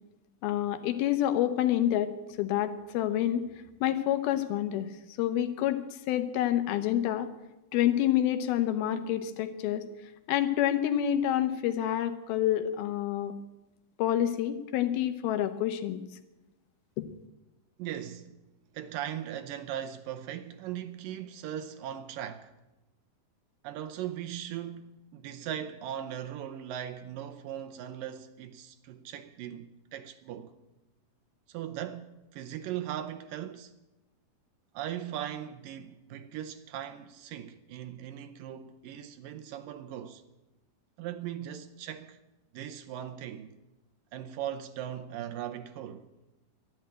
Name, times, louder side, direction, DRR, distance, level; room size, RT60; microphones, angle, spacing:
voice 1, 0.4-2.1 2.4-3.5 3.8-4.9 5.2-5.8 6.1-7.3 7.7-9.8 10.3-13.3 14.0-16.0 17.0-17.1, left 11 dB, 80° left, 2.8 m, -28 dB
voice 2, 17.8-18.3 18.7-22.5 23.6-30.5 31.5-33.7 34.7-40.2 41.0-42.2 42.5-43.5 44.1-46.1, right 10 dB, 80° right, 2.2 m, -39 dB
12.0 x 11.5 x 8.9 m
omnidirectional pair, 4.4 m